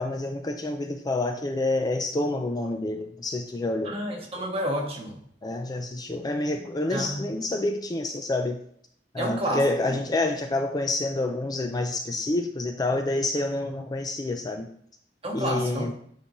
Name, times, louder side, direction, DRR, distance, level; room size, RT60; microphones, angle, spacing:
voice 1, 0.0-4.0 5.4-8.6 9.1-14.7 15.3-15.9, left 2 dB, 20° left, 5 dB, 0.4 m, -28 dB
voice 2, 3.8-5.2 6.9-7.3 9.2-9.6 13.7-13.8 15.2-15.9, equal, 35° right, 0 dB, 1.4 m, -30 dB
9.9 x 4.0 x 3.0 m, 0.64 s
head